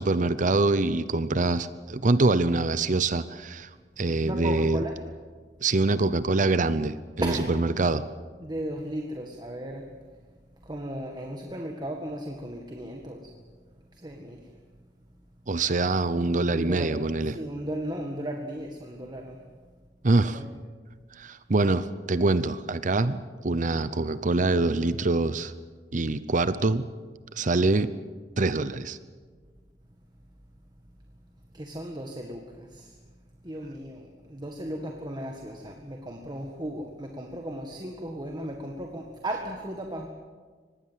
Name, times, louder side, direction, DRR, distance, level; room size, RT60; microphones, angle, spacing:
voice 1, 0.0-3.7 4.0-4.8 5.6-8.0 15.5-17.3 20.0-20.4 21.2-25.5 25.9-26.9 27.4-27.9 28.4-29.0, right 2 dB, 45° right, 14 dB, 0.7 m, -24 dB
voice 2, 4.2-5.0 7.2-7.5 8.4-9.9 10.6-13.3 13.9-14.4 16.5-17.0 17.2-19.4 20.3-20.5 31.5-33.0 33.4-40.1, right 1 dB, 25° right, 2 dB, 1.8 m, -35 dB
25.0 x 19.5 x 7.6 m, 1.5 s
head